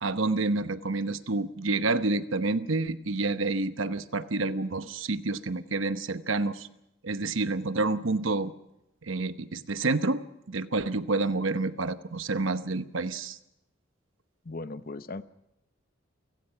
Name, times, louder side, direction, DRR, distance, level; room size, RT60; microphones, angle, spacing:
voice 1, 0.0-6.7 7.0-8.5 9.0-10.2 10.5-13.4, right 3 dB, 90° right, 11 dB, 1.0 m, -28 dB
voice 2, 14.4-15.2, left 2 dB, 45° left, 12 dB, 0.8 m, -37 dB
29.0 x 17.0 x 5.8 m, 0.86 s
head